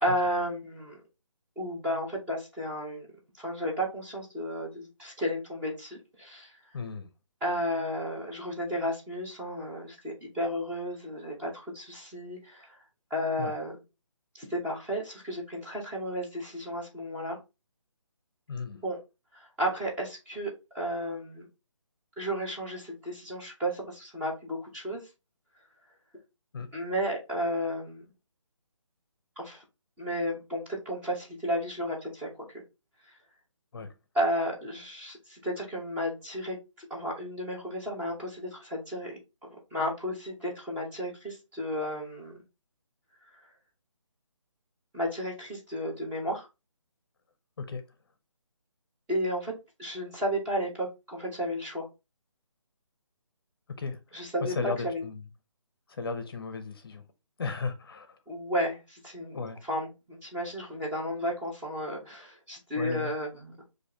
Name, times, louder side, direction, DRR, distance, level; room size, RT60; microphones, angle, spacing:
voice 1, 0.0-1.0 1.6-3.1 3.4-6.6 7.4-12.8 13.1-13.7 14.3-17.4 18.8-19.0 19.3-21.5 22.2-25.0 26.7-28.0 29.4-29.6 30.0-32.6 33.0-33.2 34.1-39.2 39.7-42.4 43.2-43.4 44.9-46.5 49.1-49.5 49.8-51.9 54.1-55.0 58.3-63.5, equal, 10° right, 0.9 m, -33 dB
voice 2, 6.7-7.1 13.4-13.5 18.5-18.8 26.5-26.8 33.7-33.9 47.6-47.8 53.8-54.3 54.6-55.2 55.9-57.0 57.4-58.2 59.3-59.6 62.8-63.1, left 4 dB, 45° left, 0.6 m, -35 dB
6.2 x 2.6 x 2.8 m
figure-of-eight pair, 155°, 17 cm